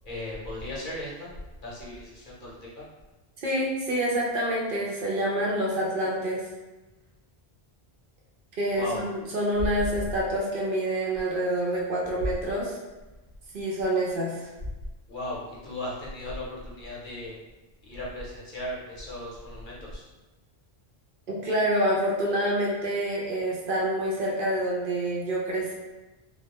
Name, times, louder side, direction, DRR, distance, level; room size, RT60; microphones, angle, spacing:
voice 1, 0.0-1.3 1.6-2.8 8.7-9.1 15.1-17.4 17.8-20.0, left 1 dB, 55° left, -6 dB, 0.8 m, -37 dB
voice 2, 3.4-6.4 8.6-12.8 13.5-14.5 21.3-25.8, right 1 dB, 65° right, -3 dB, 0.7 m, -27 dB
2.2 x 2.1 x 2.8 m, 1.1 s
omnidirectional pair, 1.0 m